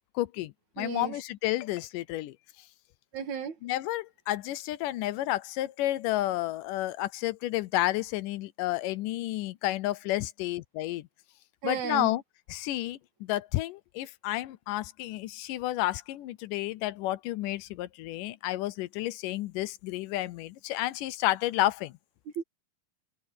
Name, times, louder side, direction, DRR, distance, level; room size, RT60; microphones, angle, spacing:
voice 1, 0.2-2.3 3.6-11.1 11.6-12.2 12.5-21.9, left 16 dB, 80° left, 2.3 m, -31 dB
voice 2, 0.8-1.1 3.1-3.6 11.6-12.1 22.4-22.5, right 8 dB, 65° right, 2.9 m, -33 dB
omnidirectional pair, 3.8 m